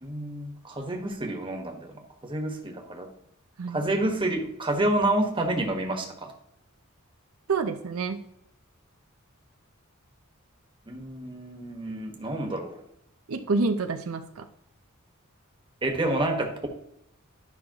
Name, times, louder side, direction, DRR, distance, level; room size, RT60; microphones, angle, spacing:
voice 1, 0.0-1.9 2.2-3.1 3.7-6.3 10.9-12.8 15.8-16.7, right 1 dB, 25° right, 3 dB, 1.4 m, -29 dB
voice 2, 7.5-8.2 13.3-14.5, right 4 dB, 85° right, 7 dB, 0.6 m, -28 dB
12.0 x 5.6 x 3.0 m, 0.78 s
head